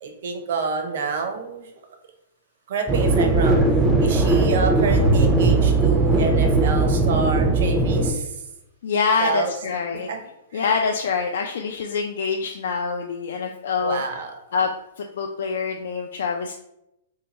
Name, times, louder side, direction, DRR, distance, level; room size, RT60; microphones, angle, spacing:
voice 1, 0.0-1.7 2.7-3.6 4.0-8.4 9.2-9.5 9.9-10.2 10.5-10.6 13.8-14.3, right 4 dB, 65° right, 4 dB, 0.6 m, -28 dB
sound 1, 2.9-8.1, right 2 dB, 10° right, 0.4 m, -19 dB
voice 2, 8.8-10.1 10.5-14.0 14.5-14.7 15.0-16.5, left 5 dB, 75° left, 3 dB, 0.3 m, -25 dB
2.8 x 2.2 x 4.1 m, 0.86 s
hypercardioid pair, 145°, 0 cm